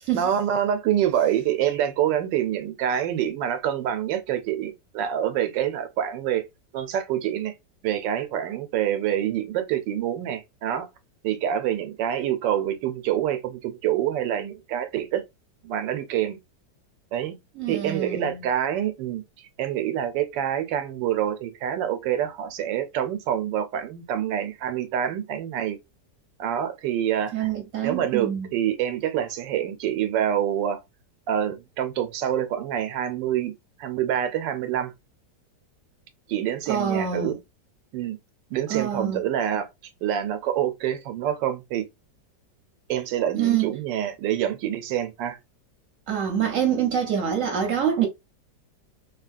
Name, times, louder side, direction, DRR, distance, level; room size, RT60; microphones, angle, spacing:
voice 1, 0.1-6.4 6.7-7.5 7.8-10.9 11.2-15.2 15.6-16.4 17.1-17.3 17.7-25.8 26.4-27.5 27.8-30.8 31.3-33.5 33.8-34.9 36.3-37.4 37.9-38.2 38.5-39.7 40.0-41.8 42.9-45.4, right 10 dB, 85° right, 1.3 m, -26 dB
voice 2, 17.6-18.4 27.3-28.5 36.7-37.3 38.7-39.2 43.3-43.7 46.1-48.1, right 8 dB, 55° right, 1.0 m, -25 dB
2.8 x 2.7 x 2.4 m
omnidirectional pair, 1.9 m